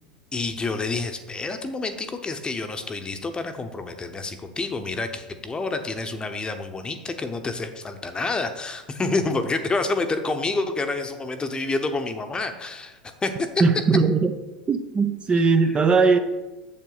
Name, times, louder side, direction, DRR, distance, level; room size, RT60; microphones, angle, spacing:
voice 1, 0.3-13.5, left 3 dB, 20° left, 7 dB, 0.9 m, -28 dB
voice 2, 13.6-14.3 14.7-16.2, right 4 dB, 25° right, 8 dB, 0.6 m, -19 dB
7.5 x 7.1 x 4.0 m, 1.1 s
hypercardioid pair, 85°, 4 cm